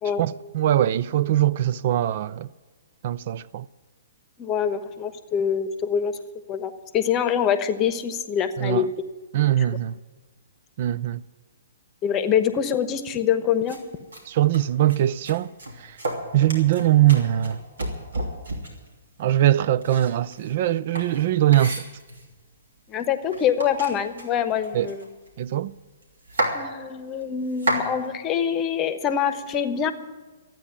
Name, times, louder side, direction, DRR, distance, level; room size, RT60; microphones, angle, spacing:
voice 1, 0.2-2.5 3.0-3.6 8.6-8.9 9.3-9.9 10.8-11.2 14.3-15.5 16.3-17.6 19.2-21.8 24.7-24.9 25.4-25.7, right 13 dB, 50° right, 0.4 m, -21 dB
voice 2, 4.4-6.2 6.5-8.9 9.6-9.8 12.0-13.8 22.9-25.1 26.5-29.9, left 8 dB, 25° left, 1.0 m, -25 dB
sound 1, 13.7-13.8 14.1-14.2 14.5-15.0 15.2-18.9 19.8-22.3 23.0-23.1 23.3-25.4 25.7-25.8 26.0-26.6 27.2-27.9, right 1 dB, 75° right, 3.1 m, -31 dB
13.0 x 9.0 x 9.8 m
figure-of-eight pair, 125°, 0 cm